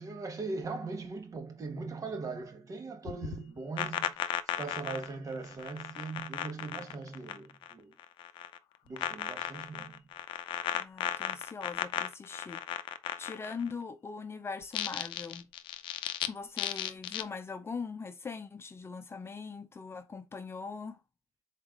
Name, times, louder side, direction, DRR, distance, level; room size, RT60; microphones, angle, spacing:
voice 1, 0.0-7.9 8.9-10.0, right 3 dB, 40° right, 1.4 m, -40 dB
sound 1, 3.1-7.7 8.0-8.6 9.0-13.7 14.6-16.3 16.6-17.2, left 12 dB, 70° left, 0.5 m, -35 dB
voice 2, 10.7-12.6 13.2-15.5 16.3-21.0, left 5 dB, 30° left, 0.6 m, -41 dB
4.1 x 3.4 x 3.7 m
cardioid pair, 85°, 9 cm